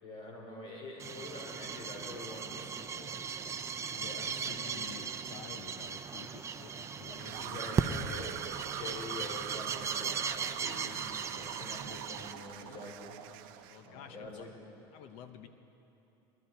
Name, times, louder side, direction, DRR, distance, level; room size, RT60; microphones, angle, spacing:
voice 1, 0.0-3.7 4.0-4.6 7.4-8.4 8.7-13.1 13.8-14.5, left 2 dB, 50° left, 0 dB, 3.5 m, -46 dB
sound 1, 1.0-12.3, right 6 dB, 25° right, 0.6 m, -38 dB
voice 2, 3.9-8.0 11.4-11.5 12.6-12.8 13.7-14.5 14.9-15.5, left 8 dB, 70° left, 9 dB, 0.9 m, -50 dB
Bass guitar, 7.1-13.3, left 8 dB, 15° left, 1.2 m, -62 dB
sound 2, 7.2-13.9, right 12 dB, 75° right, 0.7 m, -43 dB
21.5 x 12.0 x 4.4 m, 2.9 s
supercardioid pair, 105°, 12 cm